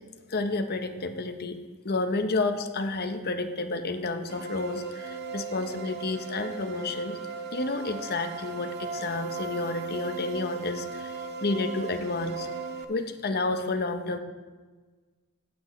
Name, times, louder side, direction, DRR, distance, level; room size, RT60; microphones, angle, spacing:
voice 1, 0.3-1.6 1.8-7.2 7.5-12.5 12.9-14.2, left 3 dB, 45° left, 7 dB, 0.8 m, -30 dB
sound 1, 4.3-12.8, right 5 dB, 50° right, 0.6 m, -37 dB
15.5 x 7.7 x 3.1 m, 1.4 s
head